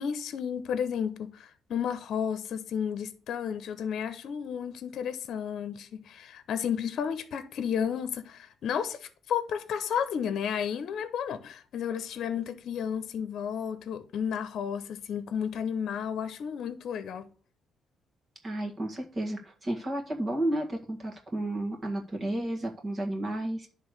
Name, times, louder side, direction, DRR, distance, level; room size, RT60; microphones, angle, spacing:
voice 1, 0.0-17.3, left 8 dB, 70° left, 0.8 m, -32 dB
voice 2, 18.4-23.7, right 1 dB, 35° right, 1.9 m, -32 dB
10.5 x 3.5 x 6.5 m
cardioid pair, 90°, 0 cm